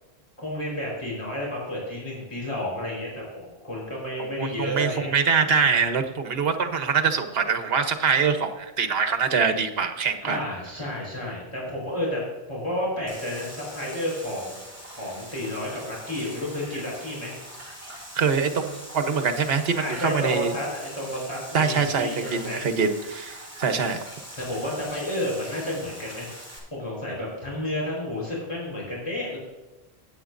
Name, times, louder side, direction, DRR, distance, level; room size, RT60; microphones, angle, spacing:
voice 1, 0.4-5.1 10.2-12.2 12.5-14.6 14.9-17.3 19.8-22.6 24.4-26.3 26.7-29.4, left 1 dB, 30° left, -4 dB, 4.3 m, -31 dB
voice 2, 4.2-10.4 18.1-20.5 21.5-24.1, right 5 dB, 70° right, 8 dB, 1.2 m, -24 dB
sound 1, 13.1-26.6, equal, 15° right, 3.0 m, -42 dB
15.5 x 9.0 x 2.6 m, 1.1 s
omnidirectional pair, 1.1 m